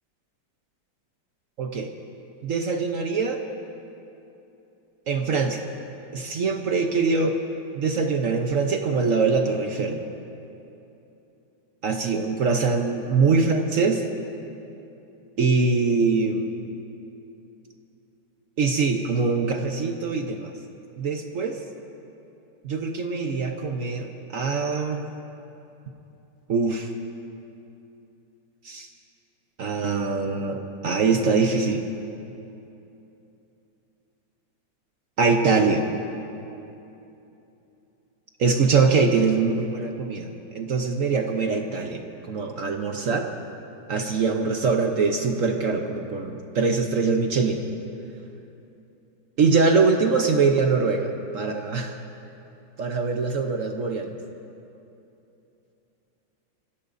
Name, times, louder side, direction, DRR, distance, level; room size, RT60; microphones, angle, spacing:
voice 1, 1.6-1.9 2.4-3.4 5.1-5.6 6.1-7.4 7.7-10.0 11.8-14.0 15.4-16.5 18.6-20.5 21.0-21.6 22.6-25.0 26.5-26.9 28.6-28.9 29.6-31.8 35.2-35.9 38.4-42.0 42.3-43.3 43.9-47.6 49.4-52.0 52.8-54.1, right 4 dB, 55° right, 3 dB, 1.0 m, -23 dB
28.0 x 15.5 x 2.6 m, 2.9 s
omnidirectional pair, 2.1 m